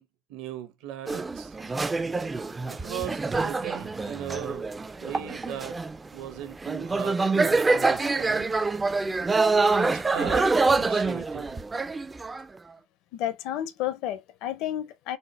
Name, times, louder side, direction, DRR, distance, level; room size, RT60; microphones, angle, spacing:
voice 1, 0.0-1.6 2.7-4.7 5.0-5.8 6.1-8.5 9.7-11.6, right 11 dB, 75° right, 1.0 m, -38 dB
sound 1, 1.1-6.1 6.5-12.6, right 3 dB, 15° right, 0.3 m, -26 dB
voice 2, 13.1-15.2, left 12 dB, 65° left, 0.6 m, -31 dB
4.2 x 2.0 x 4.0 m
cardioid pair, 145°, 0 cm